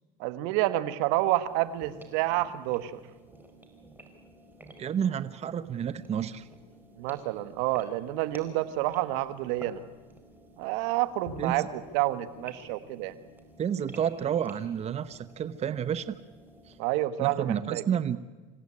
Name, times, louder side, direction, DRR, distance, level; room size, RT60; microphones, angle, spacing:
voice 1, 0.2-3.0 7.0-9.8 10.6-11.7 11.9-13.1 16.8-17.8, right 16 dB, 75° right, 13 dB, 1.4 m, -29 dB
sound 1, 1.4-16.8, right 1 dB, 10° right, 4.7 m, -52 dB
voice 2, 4.8-6.5 11.4-11.7 13.6-16.1 16.7-16.8 17.2-18.2, right 8 dB, 35° right, 14 dB, 1.0 m, -30 dB
Bowed string instrument, 11.3-14.5, left 4 dB, 60° left, 4.3 m, -51 dB
26.5 x 16.5 x 9.9 m, 1.3 s
supercardioid pair, 100°, 18 cm